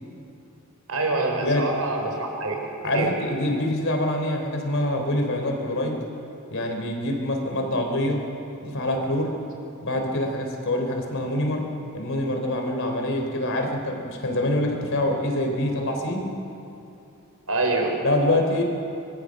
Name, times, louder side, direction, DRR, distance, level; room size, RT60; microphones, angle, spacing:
voice 1, 0.9-2.6 2.9-3.1 17.5-18.0, right 2 dB, 85° right, 2 dB, 4.1 m, -25 dB
voice 2, 2.8-6.0 6.5-8.2 8.6-9.4 9.8-11.7 11.9-16.3 18.0-18.6, left 1 dB, 60° left, 2 dB, 3.7 m, -25 dB
24.5 x 20.0 x 6.5 m, 2.8 s
head